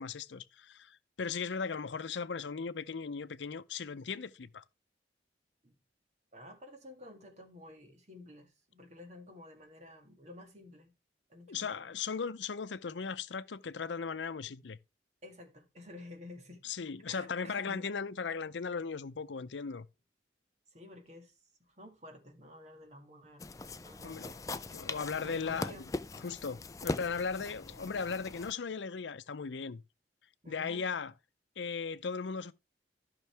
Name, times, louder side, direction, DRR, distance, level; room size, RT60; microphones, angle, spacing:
voice 1, 0.0-4.6 11.5-14.8 16.6-19.9 24.0-24.3 24.7-25.8 26.2-29.8 30.5-31.1 31.6-32.5, left 5 dB, 85° left, 0.6 m, -37 dB
voice 2, 6.3-10.9 11.3-11.9 15.2-16.6 17.0-17.9 20.7-23.5 23.8-24.5 25.2-25.9 30.4-30.9, left 1 dB, 40° right, 2.0 m, -52 dB
sound 1, 23.4-28.5, left 2 dB, 20° left, 0.4 m, -41 dB
14.0 x 5.9 x 3.4 m
head